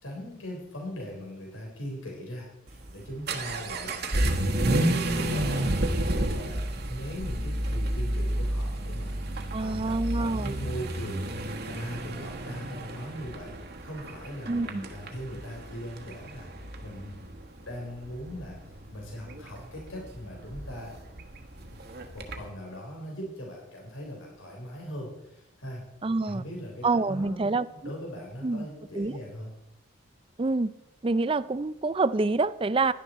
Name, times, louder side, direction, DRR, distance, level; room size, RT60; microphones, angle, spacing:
voice 1, 0.0-4.0 4.5-6.6 6.9-11.3 11.6-13.5 13.8-17.2 17.7-21.0 21.6-21.8 22.1-25.8 26.2-27.6 27.8-29.5, equal, 80° left, 3.7 m, -40 dB
Vehicle / Accelerating revving vroom, 2.7-22.5, right 1 dB, 50° right, 1.3 m, -31 dB
voice 2, 9.5-10.5 14.5-14.8 26.0-26.4 26.8-27.7 28.4-28.7 29.0-29.1 30.4-30.7 31.0-32.9, right 3 dB, 25° right, 0.4 m, -26 dB
17.0 x 11.0 x 4.3 m
head